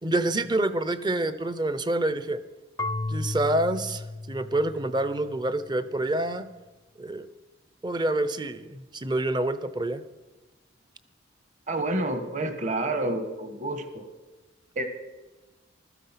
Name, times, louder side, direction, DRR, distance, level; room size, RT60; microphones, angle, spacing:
voice 1, 0.0-2.4 3.1-6.5 7.0-7.3 7.8-10.0, right 1 dB, 20° right, 14 dB, 0.7 m, -27 dB
Marimba xylophone / Wood, 2.8-5.6, left 2 dB, 15° left, 0.4 m, -34 dB
voice 2, 11.7-14.0 14.7-14.9, right 2 dB, 40° right, 9 dB, 1.4 m, -29 dB
15.0 x 13.0 x 5.8 m, 1.2 s
head